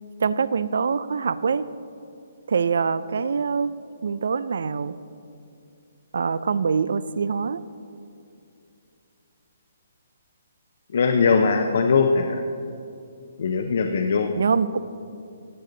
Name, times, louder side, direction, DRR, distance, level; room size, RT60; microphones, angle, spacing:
voice 1, 0.2-1.7 2.5-3.7 4.0-5.0 6.1-7.6 14.4-14.8, right 5 dB, 75° right, 16 dB, 0.4 m, -24 dB
voice 2, 10.9-12.3 13.4-14.3, left 5 dB, 60° left, 4 dB, 0.6 m, -20 dB
17.0 x 6.7 x 3.9 m, 2.5 s
hypercardioid pair, 165°, 0 cm